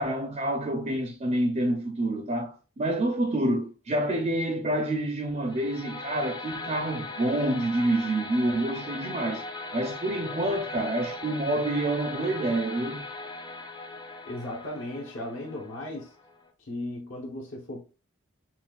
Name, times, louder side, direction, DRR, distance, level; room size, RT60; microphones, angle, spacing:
voice 1, 0.0-9.4 9.7-13.0, right 1 dB, 30° right, 0.5 m, -28 dB
sound 1, 5.5-16.5, left 3 dB, 20° left, 0.5 m, -39 dB
voice 2, 14.2-16.1 16.6-17.8, left 1 dB, 60° left, 1.0 m, -36 dB
5.6 x 2.3 x 2.3 m
head